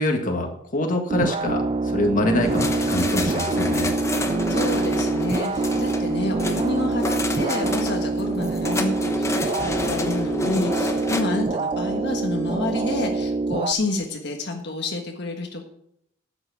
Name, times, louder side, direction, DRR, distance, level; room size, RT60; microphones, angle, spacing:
voice 1, 0.0-3.9, left 1 dB, 45° left, 3 dB, 1.8 m, -25 dB
sound 1, 1.1-13.7, right 3 dB, 30° right, 0.4 m, -25 dB
sound 2, 2.4-11.2, left 2 dB, 15° left, 1.1 m, -29 dB
voice 2, 4.5-15.6, left 2 dB, 65° left, 2 dB, 1.5 m, -29 dB
11.5 x 7.9 x 6.2 m, 0.73 s
head